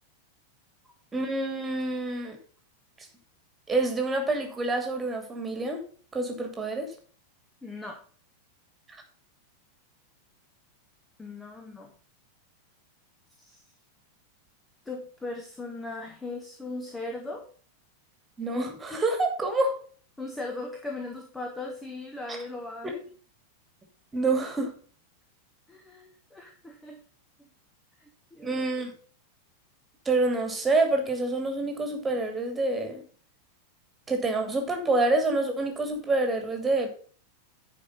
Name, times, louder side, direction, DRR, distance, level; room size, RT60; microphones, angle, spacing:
voice 1, 1.1-2.4 3.7-5.8 6.1-6.9 18.4-19.8 22.3-22.4 22.8-22.9 24.1-24.7 28.4-28.9 30.0-33.0 34.1-37.0, right 2 dB, 15° right, 4 dB, 2.5 m, -27 dB
voice 2, 7.6-8.0 11.2-11.9 13.4-13.6 14.8-17.4 20.2-23.0 25.7-27.0 28.0-28.7, left 2 dB, 10° left, 2 dB, 1.4 m, -38 dB
10.5 x 5.1 x 5.4 m, 0.43 s
figure-of-eight pair, 90°, 0 cm